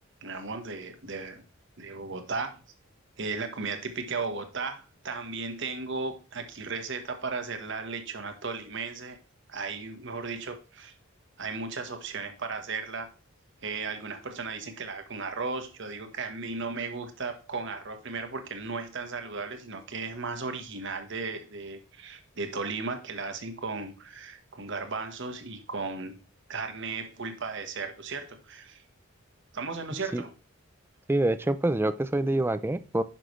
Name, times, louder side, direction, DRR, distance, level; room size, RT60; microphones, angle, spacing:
voice 1, 0.2-1.4 1.8-2.6 3.2-9.2 9.5-10.9 11.4-13.1 13.6-26.1 26.5-28.8 29.5-30.3, right 4 dB, 60° right, 6 dB, 1.3 m, -35 dB
voice 2, 31.1-33.0, right 1 dB, 10° right, 13 dB, 0.4 m, -26 dB
10.0 x 5.9 x 3.2 m, 0.34 s
head